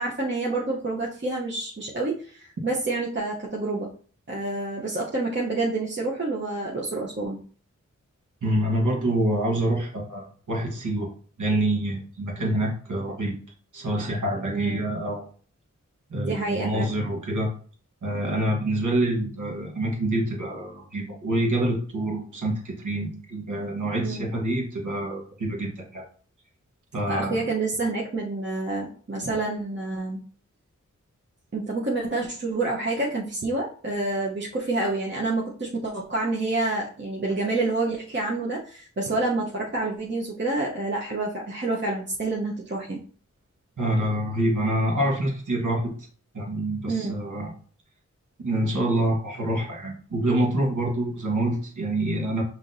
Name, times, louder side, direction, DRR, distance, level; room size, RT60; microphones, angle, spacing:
voice 1, 0.0-3.9 4.3-7.4 14.5-14.8 16.2-16.9 23.9-24.3 27.1-30.2 31.5-43.0 46.9-47.2, right 2 dB, 40° right, -4 dB, 0.9 m, -28 dB
voice 2, 8.4-11.1 11.4-13.3 13.7-15.3 16.1-17.5 18.0-26.0 26.9-27.4 43.8-46.1 46.3-47.5 48.4-52.4, right 1 dB, 85° right, -2 dB, 1.3 m, -26 dB
5.7 x 2.9 x 2.6 m, 0.44 s
wide cardioid pair, 60°, 30 cm